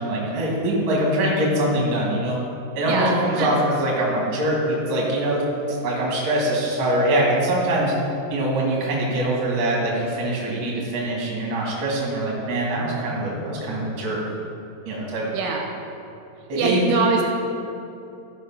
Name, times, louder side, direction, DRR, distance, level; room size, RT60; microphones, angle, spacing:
voice 1, 0.0-2.4 2.7-8.0 8.3-14.2 14.9-15.2 16.5-16.8, right 1 dB, 40° right, -4 dB, 1.9 m, -23 dB
voice 2, 2.8-3.5 15.3-15.6 16.6-17.2, right 4 dB, 80° right, 1 dB, 3.2 m, -23 dB
13.5 x 5.2 x 5.8 m, 2.8 s
omnidirectional pair, 5.6 m